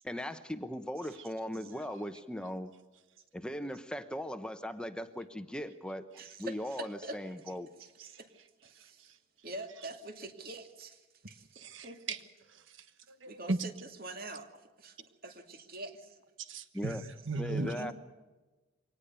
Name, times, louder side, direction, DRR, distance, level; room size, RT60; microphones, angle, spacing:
voice 1, 0.0-2.7 3.3-6.1 6.4-7.7 16.7-17.0 17.4-17.9, equal, 5° left, 9 dB, 0.9 m, -38 dB
voice 2, 6.2-7.4 7.8-8.3 8.6-9.1 9.4-12.0 13.3-13.7 14.0-14.5 14.8-15.0 15.2-16.2 17.5-17.9, right 2 dB, 50° right, 6 dB, 2.4 m, -45 dB
voice 3, 8.7-9.2 11.5-12.2 12.5-13.6 16.4-17.8, right 3 dB, 85° right, 10 dB, 1.4 m, -38 dB
24.0 x 19.0 x 6.9 m, 1.2 s
head